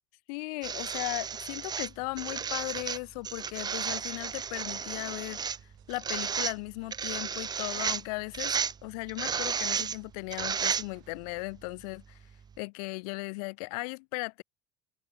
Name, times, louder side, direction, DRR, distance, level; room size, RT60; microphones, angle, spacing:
voice 1, 0.3-5.4 5.9-8.6 8.8-12.2 12.6-14.4, left 30 dB, 70° left, 2.2 m, -37 dB
sound 1, 0.6-11.2 12.2-12.3, right 7 dB, 20° right, 0.4 m, -33 dB
sound 2, 2.0-11.7, right 28 dB, 65° right, 6.3 m, -64 dB
hypercardioid pair, 70°, 20 cm